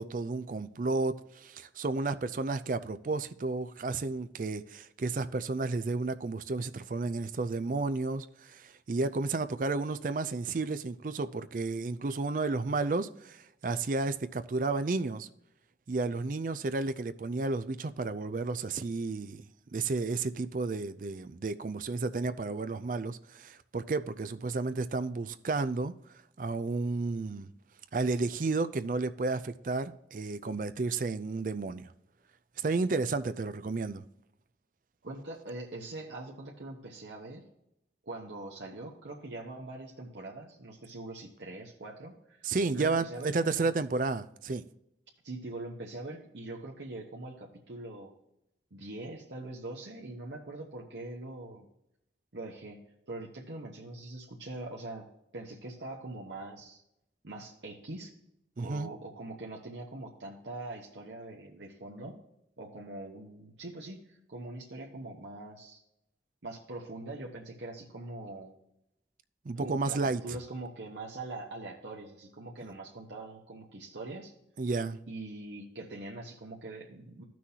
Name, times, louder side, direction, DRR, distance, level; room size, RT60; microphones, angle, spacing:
voice 1, 0.0-15.3 15.9-19.4 19.7-25.9 26.4-27.5 27.9-31.9 32.6-34.0 42.4-44.6 58.6-58.9 69.5-70.4 74.6-75.0, right 3 dB, 45° right, 0.4 m, -32 dB
voice 2, 35.0-37.5 38.1-42.5 42.7-43.8 45.2-48.1 48.7-51.7 52.3-56.8 57.2-58.1 58.6-62.2 62.6-65.8 66.4-68.5 69.6-74.3 75.1-77.2, right 2 dB, 85° right, 1.1 m, -43 dB
14.0 x 6.1 x 2.8 m
head